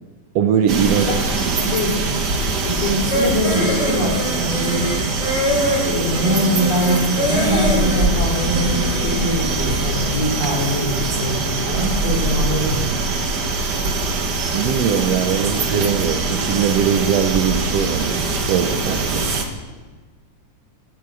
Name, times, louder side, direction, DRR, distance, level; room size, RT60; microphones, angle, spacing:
voice 1, 0.3-1.1 1.4-1.5 14.5-19.3, right 8 dB, 70° right, 5 dB, 1.5 m, -20 dB
sound 1, 0.7-19.4, right 3 dB, 50° right, 1.2 m, -23 dB
voice 2, 1.6-1.9 2.6-4.9 5.8-12.9, left 1 dB, 75° left, -6 dB, 5.7 m, -23 dB
sound 2, 3.1-9.9, equal, 10° left, 3.8 m, -24 dB
15.5 x 8.6 x 7.6 m, 1.3 s
omnidirectional pair, 3.8 m